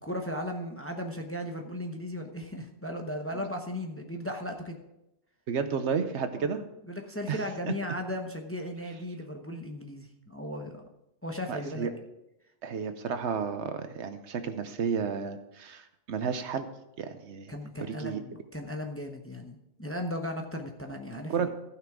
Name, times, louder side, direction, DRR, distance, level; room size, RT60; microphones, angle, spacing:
voice 1, 0.0-4.8 6.4-10.8 11.2-11.9 17.5-21.5, left 1 dB, 15° left, 3 dB, 0.8 m, -36 dB
voice 2, 5.5-6.6 7.3-7.7 11.5-11.9 12.6-16.7 17.0-17.5 17.9-18.2 21.3-21.5, right 6 dB, 75° right, 9 dB, 1.1 m, -32 dB
15.0 x 6.0 x 4.7 m, 0.90 s
omnidirectional pair, 1.2 m